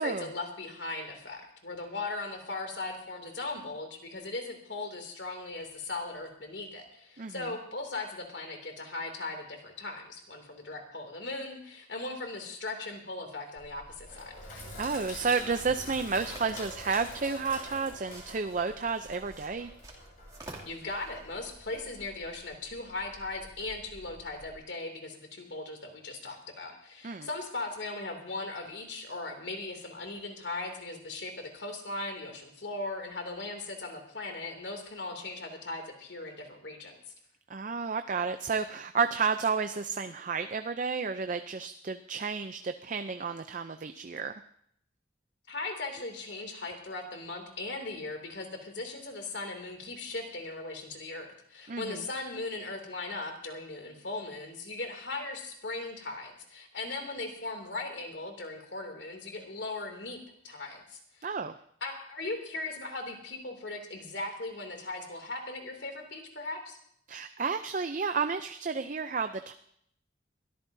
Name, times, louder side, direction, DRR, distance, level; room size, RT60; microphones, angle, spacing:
voice 1, 0.0-14.4 20.6-37.0 45.5-60.2 60.4-61.3 61.8-66.8, left 2 dB, 70° left, 4 dB, 2.7 m, -38 dB
Sink (filling or washing), 13.6-24.6, left 1 dB, 45° left, 7.6 m, -47 dB
sound 1, 14.6-22.5, right 2 dB, 20° right, 2.6 m, -53 dB
voice 2, 14.8-19.7 27.0-27.3 37.5-44.3 51.7-52.0 61.2-61.5 67.1-69.5, right 5 dB, 45° right, 8 dB, 0.5 m, -31 dB
22.0 x 13.5 x 2.7 m, 0.68 s
head